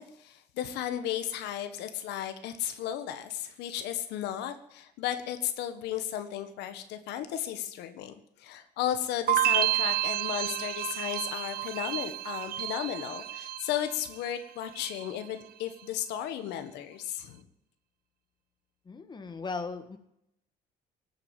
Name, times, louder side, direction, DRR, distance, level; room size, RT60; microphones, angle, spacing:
voice 1, 0.0-8.1 8.4-17.4, left 11 dB, 85° left, 9 dB, 1.5 m, -34 dB
sound 1, 9.3-14.3 14.6-15.2, right 14 dB, 60° right, 0.8 m, -30 dB
voice 2, 18.9-20.0, left 4 dB, 25° left, 8 dB, 1.9 m, -37 dB
18.0 x 8.8 x 9.0 m, 0.78 s
cardioid pair, 110°, 17 cm